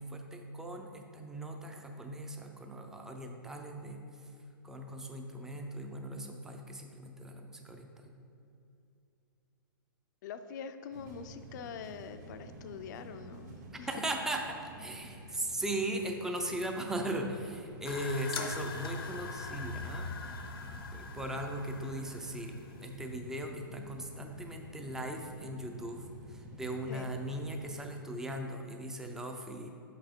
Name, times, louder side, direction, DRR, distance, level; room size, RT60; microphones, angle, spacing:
voice 1, 0.0-4.0 4.6-8.1 13.7-20.1 20.6-29.7, right 1 dB, 5° right, 3 dB, 0.4 m, -38 dB
voice 2, 10.2-13.9 15.3-15.4 26.9-27.1, left 7 dB, 55° left, 9 dB, 0.5 m, -44 dB
sound 1, 10.9-27.8, right 1 dB, 50° right, 1.1 m, -50 dB
sound 2, 17.9-23.0, left 4 dB, 85° left, 0.8 m, -42 dB
6.6 x 5.6 x 3.6 m, 2.7 s
hypercardioid pair, 140°, 12 cm